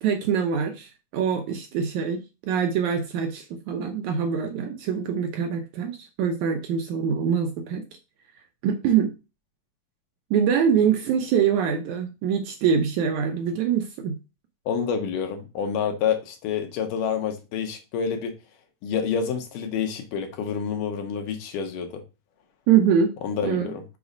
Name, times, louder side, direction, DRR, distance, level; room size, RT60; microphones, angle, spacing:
voice 1, 0.0-7.8 8.6-9.1 10.3-14.2 22.7-23.1 23.4-23.7, right 7 dB, 75° right, 1.9 m, -24 dB
voice 2, 14.7-18.3 18.8-22.0 23.2-23.8, left 7 dB, 75° left, 2.5 m, -28 dB
6.1 x 3.9 x 5.0 m
omnidirectional pair, 4.0 m